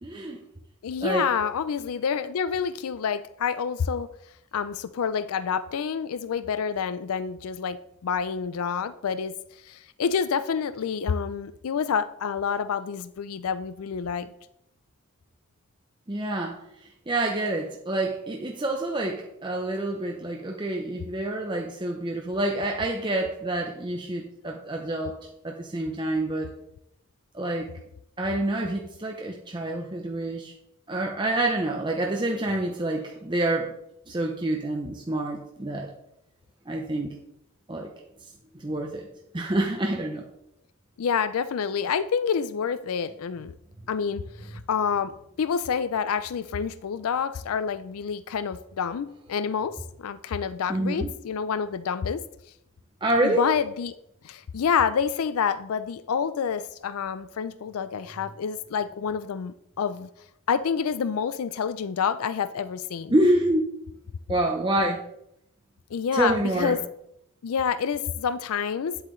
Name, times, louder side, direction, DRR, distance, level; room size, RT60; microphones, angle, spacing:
voice 1, 0.0-0.4 1.0-1.3 16.1-26.5 27.3-27.7 28.2-30.5 30.9-33.7 34.1-35.9 36.7-37.1 37.7-37.9 38.5-39.1 39.3-40.2 50.7-51.1 53.0-53.4 63.1-63.6 64.3-65.0 66.1-66.8, right 1 dB, 20° right, 1 dB, 0.7 m, -27 dB
voice 2, 0.8-4.1 4.5-7.8 8.0-9.3 9.7-14.3 41.0-43.5 43.9-52.2 53.2-54.0 54.2-60.1 60.5-63.1 65.9-66.8 67.4-69.0, left 6 dB, 80° left, 14 dB, 0.4 m, -28 dB
9.9 x 7.9 x 3.2 m, 0.78 s
head